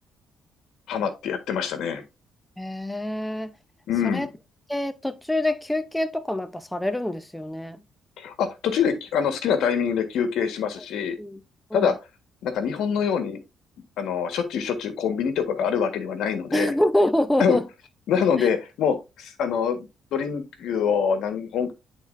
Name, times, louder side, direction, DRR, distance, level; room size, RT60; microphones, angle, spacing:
voice 1, 0.9-2.0 3.9-4.3 8.2-11.1 11.7-11.9 12.4-13.4 14.0-16.7 17.4-17.6 18.1-21.7, left 7 dB, 80° left, 1.4 m, -25 dB
voice 2, 2.6-3.5 4.0-4.3 4.7-7.8 11.2-11.4 11.7-11.9 16.5-17.7 18.4-18.5, left 1 dB, 5° left, 0.7 m, -25 dB
10.5 x 4.1 x 2.6 m
cardioid pair, 90°, 0 cm